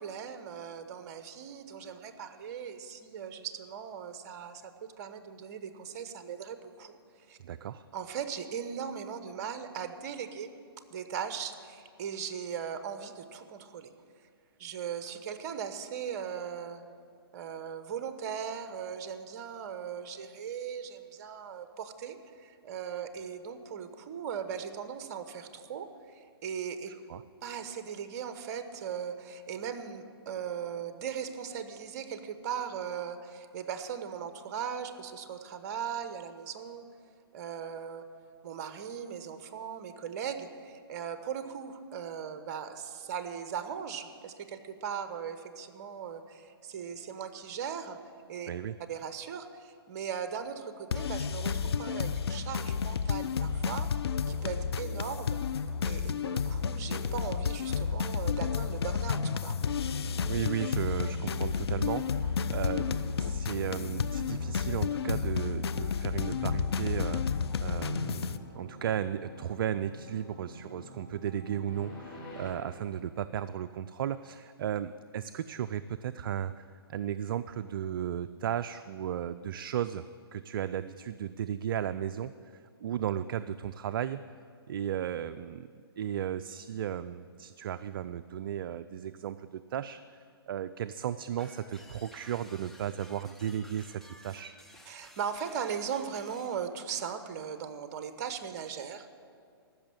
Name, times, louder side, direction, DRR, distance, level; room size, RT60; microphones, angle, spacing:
voice 1, 0.0-7.0 7.3-7.4 7.9-10.5 10.9-13.9 14.6-16.8 17.3-26.9 27.4-36.8 37.3-38.1 38.4-48.0 48.3-48.5 48.9-53.9 54.3-55.4 55.8-59.6 94.9-99.1, right 7 dB, 45° right, 10 dB, 1.0 m, -38 dB
voice 2, 7.4-7.8 27.1-27.2 48.5-48.7 60.3-80.0 80.3-82.3 82.8-84.2 84.7-85.7 86.0-90.0 90.5-94.5, right 10 dB, 60° right, 11 dB, 0.4 m, -35 dB
sound 1, 50.9-68.4, left 6 dB, 80° left, 0.5 m, -31 dB
sound 2, 59.4-72.5, left 1 dB, 35° left, 3.8 m, -48 dB
sound 3, 91.4-96.6, left 1 dB, ahead, 0.7 m, -54 dB
14.0 x 6.4 x 8.8 m, 2.3 s
hypercardioid pair, 140°, 13 cm